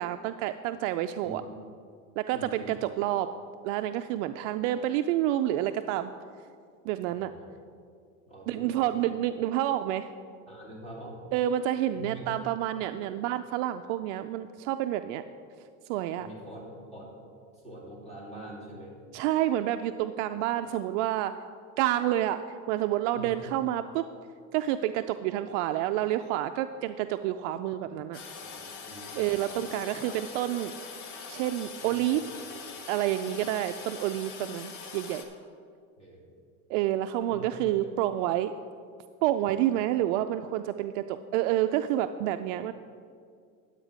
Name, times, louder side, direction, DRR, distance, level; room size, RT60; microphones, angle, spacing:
voice 1, 0.0-1.4 2.2-3.3 3.6-6.1 6.8-7.3 8.5-10.1 11.3-15.2 15.9-16.3 19.1-21.4 21.8-24.1 24.5-28.2 29.2-30.7 31.3-32.2 32.9-35.2 36.7-38.5 39.2-42.7, right 13 dB, 65° right, 9 dB, 0.5 m, -29 dB
voice 2, 2.3-2.8 7.1-7.5 8.3-9.1 10.5-11.2 12.0-12.2 16.2-16.6 16.9-17.1 17.6-18.9 23.1-23.3 28.5-28.6 28.9-29.2 29.5-29.7 31.8-32.5 33.4-33.5 36.0-36.2 37.3-37.4 37.7-37.9 39.7-39.8, right 1 dB, 15° left, -4 dB, 2.9 m, -44 dB
Toilet flush, 28.1-35.2, left 5 dB, 85° left, 1.6 m, -43 dB
11.0 x 8.2 x 5.0 m, 2.2 s
supercardioid pair, 145°, 40 cm